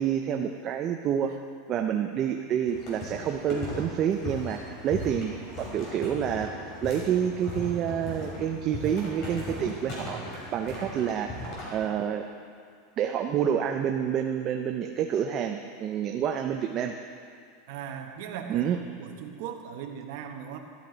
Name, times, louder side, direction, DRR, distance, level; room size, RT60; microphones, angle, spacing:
voice 1, 0.0-1.3 1.7-6.5 6.8-10.2 10.5-12.2 13.0-17.0 18.5-18.8, right 9 dB, 25° right, 4 dB, 0.5 m, -28 dB
sound 1, 2.7-11.9, left 1 dB, 35° left, 3.6 m, -38 dB
voice 2, 17.7-18.7 19.0-20.6, right 8 dB, 50° right, 4 dB, 1.1 m, -38 dB
13.0 x 12.0 x 3.9 m, 2.2 s
supercardioid pair, 175°, 0 cm